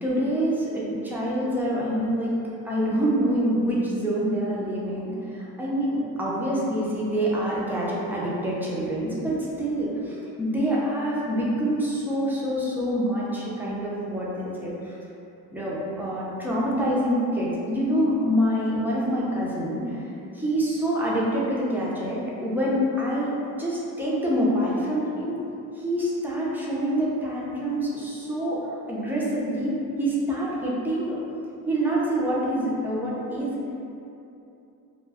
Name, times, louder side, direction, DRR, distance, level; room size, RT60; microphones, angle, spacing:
voice 1, 0.0-2.3 2.6-14.9 15.5-20.1 20.3-23.3 23.6-25.4 25.7-31.2 31.7-33.6, equal, 5° right, -7 dB, 0.5 m, -26 dB
2.2 x 2.1 x 3.3 m, 2.8 s
cardioid pair, 105°, 39 cm